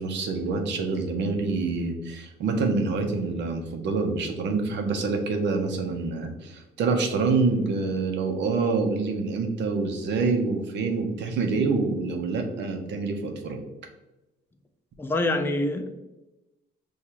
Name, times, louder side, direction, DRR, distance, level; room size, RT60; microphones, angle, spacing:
voice 1, 0.0-13.6, right 4 dB, 80° right, 4 dB, 0.7 m, -26 dB
voice 2, 15.0-16.0, left 2 dB, 10° left, 6 dB, 0.4 m, -26 dB
6.4 x 2.4 x 2.8 m, 0.99 s
cardioid pair, 140°, 18 cm